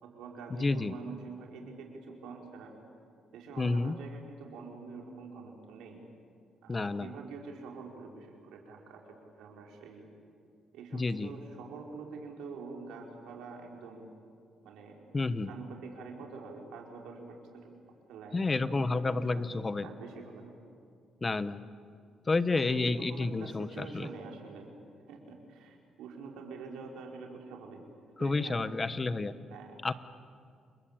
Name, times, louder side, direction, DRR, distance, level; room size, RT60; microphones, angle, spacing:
voice 1, 0.0-2.7 3.3-6.0 6.6-9.0 9.4-10.1 10.7-14.1 14.6-15.0 15.5-17.7 18.1-20.5 22.5-24.7 25.1-27.8 28.2-28.6 29.5-29.8, right 4 dB, 90° right, 1 dB, 5.0 m, -46 dB
voice 2, 0.6-0.9 3.6-4.0 6.7-7.1 10.9-11.3 15.1-15.5 18.3-19.9 21.2-21.6 22.3-24.1 28.2-29.3 29.8-29.9, left 3 dB, 25° left, 14 dB, 1.1 m, -30 dB
29.0 x 22.0 x 8.9 m, 2.3 s
cardioid pair, 90°, 0 cm